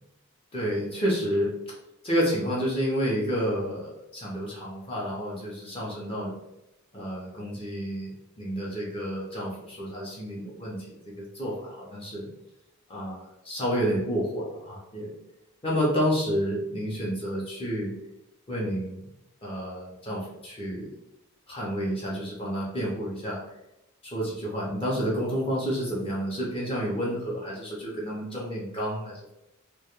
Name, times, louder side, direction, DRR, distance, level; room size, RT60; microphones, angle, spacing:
voice 1, 0.5-1.5 2.0-6.3 6.9-12.3 12.9-15.1 15.6-17.9 18.5-19.1 19.4-20.9 21.5-23.4 24.0-29.2, equal, 25° left, -5 dB, 0.5 m, -30 dB
2.1 x 2.1 x 2.9 m, 0.87 s
head